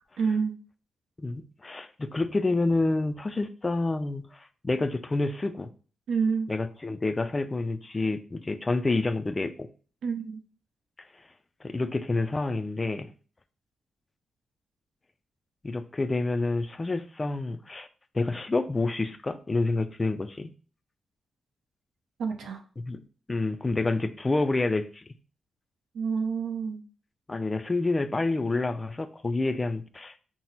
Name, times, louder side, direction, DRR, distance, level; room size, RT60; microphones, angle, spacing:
voice 1, 0.2-0.5 6.1-6.5 10.0-10.4 22.2-22.6 25.9-26.8, right 5 dB, 90° right, 0.7 m, -28 dB
voice 2, 1.2-5.7 6.5-9.7 11.6-13.1 15.6-17.9 18.1-20.5 22.8-23.0 23.3-25.0 27.3-30.1, left 2 dB, 20° left, 0.3 m, -28 dB
5.9 x 2.0 x 3.9 m
wide cardioid pair, 140°, 0 cm